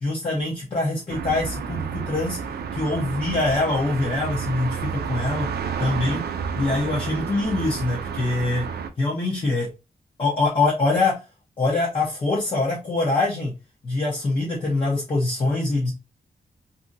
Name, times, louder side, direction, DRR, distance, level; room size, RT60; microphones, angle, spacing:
voice 1, 0.0-2.4 2.7-5.5 5.8-6.2 6.6-8.7 9.0-9.7 10.2-11.2 11.6-13.5 13.8-15.9, left 2 dB, 35° left, -5 dB, 0.8 m, -24 dB
sound 1, 1.1-8.9, right 6 dB, 85° right, 0.4 m, -30 dB
2.7 x 2.6 x 2.5 m, 0.26 s
wide cardioid pair, 175°, 16 cm